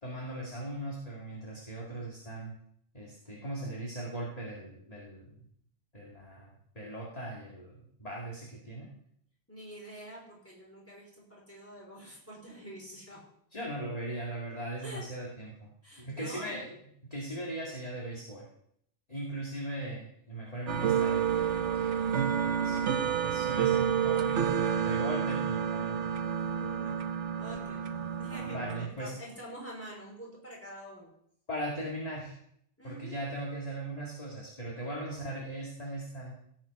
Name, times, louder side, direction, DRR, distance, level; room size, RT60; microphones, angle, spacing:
voice 1, 0.0-2.5 2.9-5.4 5.9-6.5 6.8-8.9 13.5-15.7 16.0-16.8 17.1-18.5 19.1-26.1 28.5-29.1 31.5-32.3 32.8-36.4, right 1 dB, 35° left, -4 dB, 2.4 m, -39 dB
voice 2, 9.5-13.2 14.8-15.0 15.8-16.6 26.6-26.9 27.3-27.9 28.2-31.1 32.8-33.2 35.1-35.4, equal, 10° left, -3 dB, 4.9 m, -46 dB
sound 1, 20.7-28.9, right 8 dB, 80° right, 1.2 m, -29 dB
16.5 x 8.2 x 5.4 m, 0.71 s
omnidirectional pair, 1.2 m